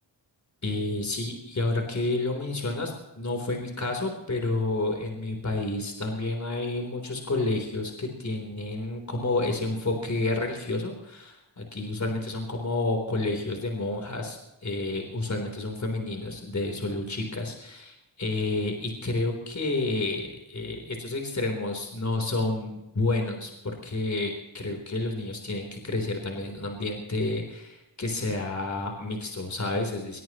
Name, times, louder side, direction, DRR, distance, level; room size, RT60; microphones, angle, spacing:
voice 1, 0.6-30.2, left 2 dB, 40° left, 3 dB, 3.7 m, -30 dB
21.5 x 21.5 x 3.0 m, 0.91 s
wide cardioid pair, 120°, 44 cm